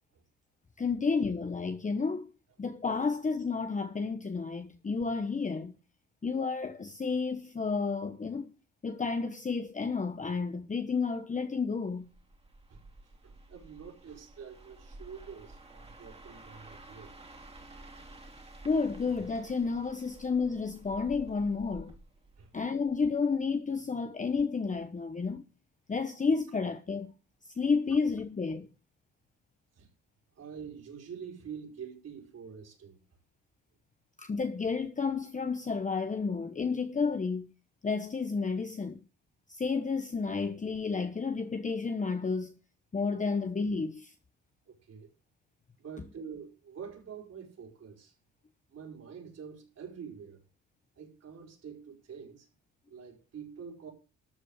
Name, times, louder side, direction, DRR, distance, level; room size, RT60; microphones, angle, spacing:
voice 1, 0.8-2.3 2.6-5.7 6.2-8.5 8.8-12.1 18.6-22.0 22.5-25.4 25.9-27.1 27.6-28.7 34.2-37.5 37.8-39.0 39.5-42.5 42.9-44.1, left 4 dB, 25° left, 1.0 m, -31 dB
sound 1, 12.0-23.1 23.4-23.7, right 2 dB, 20° right, 2.9 m, -52 dB
voice 2, 13.2-17.1 22.4-22.5 29.7-29.9 30.4-33.0 44.7-45.1 45.8-48.1 48.7-50.4 50.9-52.5 52.9-53.9, right 7 dB, 55° right, 5.0 m, -46 dB
13.0 x 5.1 x 8.1 m
cardioid pair, 90°, 30 cm